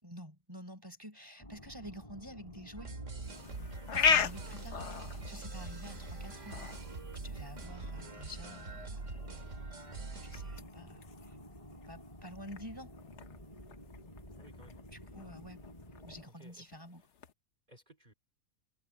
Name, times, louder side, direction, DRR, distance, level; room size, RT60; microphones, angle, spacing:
voice 1, 0.0-2.9 3.9-4.8 5.3-6.6 7.2-9.0 9.3-9.4 10.2-11.0 11.7-12.9 14.9-15.6 16.0-17.0, equal, 15° right, 4.4 m, -49 dB
sound 1, 1.4-16.2, equal, 25° left, 5.8 m, -52 dB
sound 2, 2.8-10.6, right 3 dB, 55° right, 2.6 m, -44 dB
sound 3, 3.2-17.3, left 6 dB, 55° left, 1.2 m, -38 dB
voice 2, 14.4-14.8 16.2-16.7 17.0-17.1 17.7-18.1, right 1 dB, 30° right, 3.4 m, -60 dB
omnidirectional pair, 1.5 m